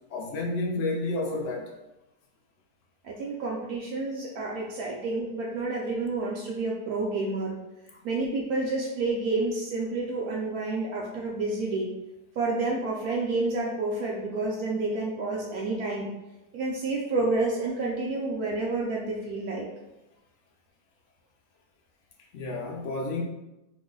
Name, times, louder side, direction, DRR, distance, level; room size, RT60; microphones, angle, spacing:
voice 1, 0.1-1.7 22.3-23.2, left 2 dB, 70° left, -1 dB, 0.7 m, -30 dB
voice 2, 3.0-7.6 8.0-11.9 12.4-16.1 16.5-19.7, right 3 dB, 70° right, -3 dB, 1.0 m, -29 dB
3.0 x 2.1 x 3.6 m, 0.98 s
omnidirectional pair, 1.7 m